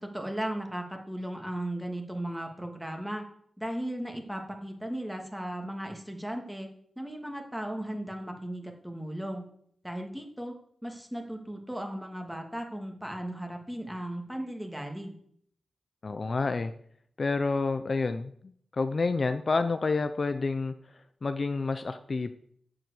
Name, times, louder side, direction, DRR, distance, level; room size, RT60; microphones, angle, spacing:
voice 1, 0.0-3.2 3.6-6.7 7.0-9.4 9.8-10.5 10.8-15.1, right 1 dB, 5° right, 3 dB, 2.7 m, -36 dB
voice 2, 16.0-16.7 17.2-20.7 21.2-22.3, left 3 dB, 50° left, 9 dB, 0.8 m, -29 dB
10.5 x 7.7 x 8.4 m, 0.65 s
wide cardioid pair, 80°, 0 cm